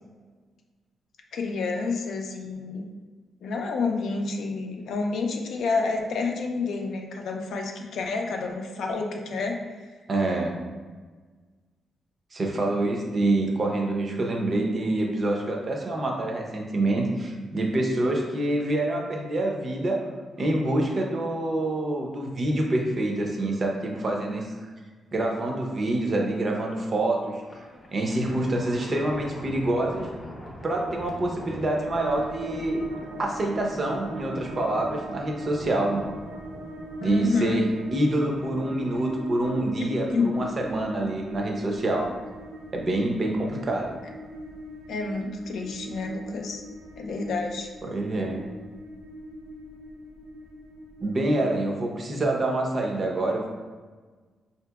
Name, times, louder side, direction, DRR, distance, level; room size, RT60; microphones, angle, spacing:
voice 1, 1.3-2.9 3.4-9.6 37.0-37.6 39.8-40.3 44.9-46.6 47.0-47.7, left 4 dB, 70° left, 2 dB, 0.4 m, -29 dB
voice 2, 10.1-10.5 12.3-20.0 20.4-24.5 25.1-27.4 27.9-30.1 30.6-32.8 33.2-36.1 37.0-42.1 42.7-44.0 47.8-48.5 51.0-53.5, right 1 dB, 35° right, 1 dB, 0.5 m, -26 dB
Thunder, 27.3-39.1, equal, 25° left, 0.7 m, -42 dB
sound 1, 31.8-51.2, equal, 75° right, 0.7 m, -41 dB
4.7 x 2.8 x 2.3 m, 1.4 s
cardioid pair, 140°, 0 cm